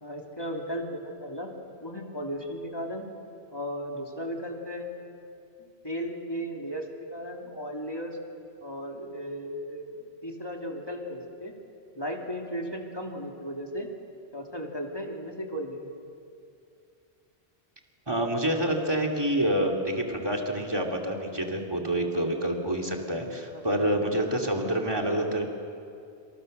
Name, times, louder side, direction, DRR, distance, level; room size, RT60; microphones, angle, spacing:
voice 1, 0.0-1.5 1.8-3.0 3.5-4.9 5.6-8.2 8.6-10.0 10.2-11.5 12.0-13.9 14.3-15.9 23.5-23.9, equal, 20° left, 0 dB, 2.8 m, -35 dB
voice 2, 18.1-25.4, right 1 dB, 20° right, 1 dB, 2.8 m, -27 dB
28.0 x 27.0 x 6.7 m, 2.5 s
omnidirectional pair, 1.1 m